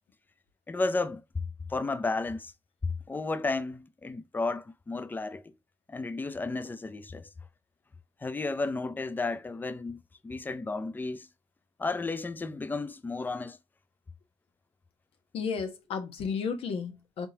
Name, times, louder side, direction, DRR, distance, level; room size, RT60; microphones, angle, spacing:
voice 1, 0.7-1.4 1.7-2.5 2.8-5.4 5.9-7.3 8.2-11.3 11.8-13.6, left 3 dB, 20° left, 0.5 m, -33 dB
voice 2, 15.3-17.3, left 5 dB, 70° left, 1.1 m, -33 dB
4.5 x 3.6 x 2.8 m
cardioid pair, 95°, 10 cm